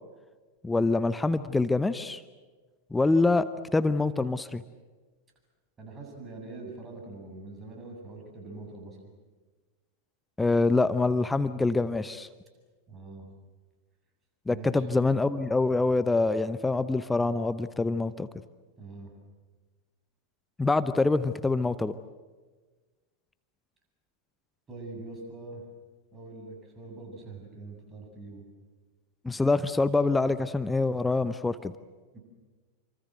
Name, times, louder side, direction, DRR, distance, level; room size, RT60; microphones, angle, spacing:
voice 1, 0.6-2.2 2.9-3.5 3.7-4.6 10.4-12.3 14.5-18.3 20.6-22.0 29.2-31.7, left 3 dB, 10° left, 14 dB, 0.8 m, -25 dB
voice 2, 5.8-9.0 12.9-13.3 14.5-14.8 18.8-19.1 24.7-25.6 26.1-28.4 32.1-32.2, right 2 dB, 20° right, 1 dB, 7.9 m, -43 dB
28.0 x 25.0 x 7.9 m, 1.4 s
figure-of-eight pair, 90°, 0 cm